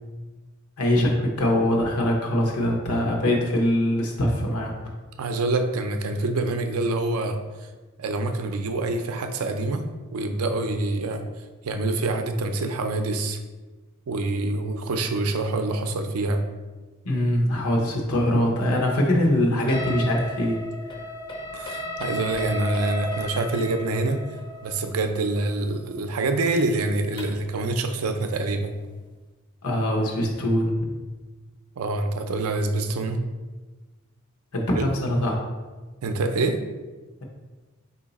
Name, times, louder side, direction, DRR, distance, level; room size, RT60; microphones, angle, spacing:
voice 1, 0.8-4.7 17.0-20.6 29.6-30.9 34.5-35.4, left 1 dB, 90° left, 0 dB, 1.0 m, -23 dB
voice 2, 5.2-7.4 8.0-9.8 10.1-11.2 11.6-13.4 14.1-16.4 21.5-24.2 24.6-28.7 31.8-33.3 34.7-34.8 36.0-36.6, right 2 dB, 80° right, 6 dB, 0.5 m, -26 dB
sound 1, 19.7-27.5, left 1 dB, 20° left, 0.5 m, -35 dB
4.7 x 2.8 x 4.0 m, 1.3 s
head